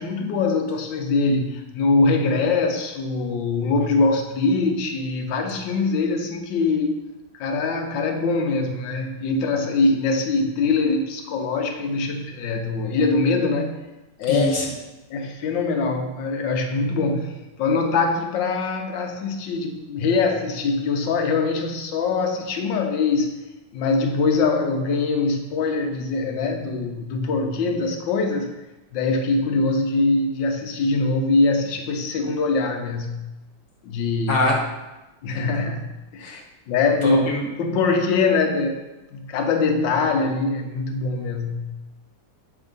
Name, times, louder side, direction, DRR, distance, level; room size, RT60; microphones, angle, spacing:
voice 1, 0.0-7.0 7.3-13.8 14.2-14.6 15.1-23.3 23.7-28.5 28.9-33.1 33.8-34.5 35.2-35.9 36.1-37.3 37.6-38.8 39.1-41.6, left 3 dB, 80° left, 4 dB, 1.5 m, -23 dB
voice 2, 14.3-14.7 34.3-34.6 36.2-36.4 37.0-37.5, left 1 dB, 45° left, -1 dB, 1.3 m, -23 dB
7.4 x 3.5 x 5.2 m, 1.0 s
omnidirectional pair, 2.1 m